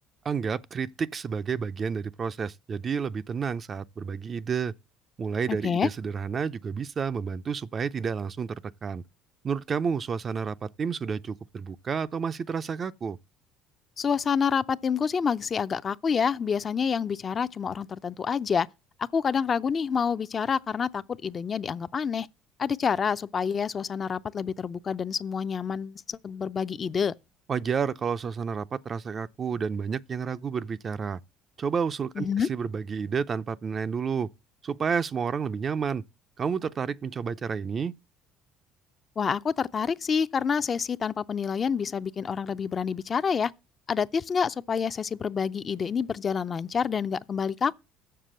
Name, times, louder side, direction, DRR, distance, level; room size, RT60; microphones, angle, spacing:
voice 1, 0.3-4.7 5.2-9.0 9.4-13.2 27.5-31.2 31.6-34.3 34.6-36.0 36.4-37.9, right 6 dB, 40° right, 0.4 m, -30 dB
voice 2, 5.5-5.9 14.0-18.7 19.0-22.3 22.6-27.1 32.2-32.5 39.2-43.5 43.9-47.8, left 6 dB, 40° left, 0.5 m, -28 dB
7.2 x 6.8 x 7.6 m
supercardioid pair, 80°, 0 cm